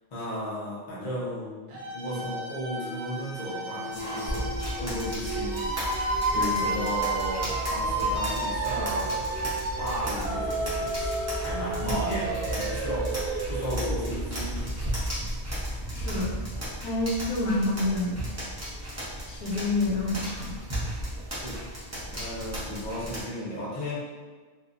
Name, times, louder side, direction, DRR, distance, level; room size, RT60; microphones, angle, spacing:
voice 1, 0.1-9.5 9.8-14.9 19.1-19.2 21.3-21.7 22.1-24.0, equal, 40° left, -8 dB, 0.6 m, -35 dB
sound 1, 1.7-14.5, right 2 dB, 85° right, 1.1 m, -31 dB
sound 2, 3.9-5.7 6.1-6.7 7.4-7.5 7.8-8.1 8.8-8.9 9.1-11.4 11.6-11.9 13.3-13.5 14.6-14.7 15.0-15.1 15.3-16.2, equal, 5° left, 1.0 m, -46 dB
sound 3, 4.3-23.2, equal, 25° right, 0.3 m, -34 dB
voice 2, 15.9-16.4 16.8-18.2 19.3-20.6, left 2 dB, 85° left, -2 dB, 1.1 m, -28 dB
2.6 x 2.3 x 2.4 m, 1.4 s
omnidirectional pair, 1.5 m